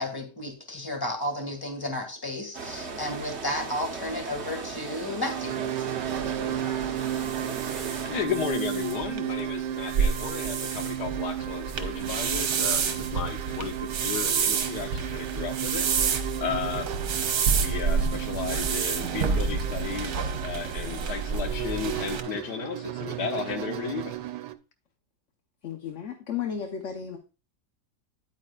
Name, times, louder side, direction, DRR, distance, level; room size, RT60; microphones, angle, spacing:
voice 1, 0.0-5.8, left 1 dB, 15° left, 4 dB, 1.7 m, -33 dB
sound 1, 2.5-8.3, right 4 dB, 45° right, 1.2 m, -37 dB
sound 2, 5.2-24.5, right 12 dB, 85° right, 1.2 m, -34 dB
sound 3, 6.1-22.2, right 6 dB, 70° right, 1.5 m, -29 dB
voice 2, 7.5-15.8 16.4-17.0 17.3-24.1, left 7 dB, 80° left, 7 dB, 1.4 m, -34 dB
voice 3, 25.6-27.2, left 8 dB, 55° left, 5 dB, 1.0 m, -33 dB
9.8 x 8.8 x 2.4 m, 0.33 s
omnidirectional pair, 1.8 m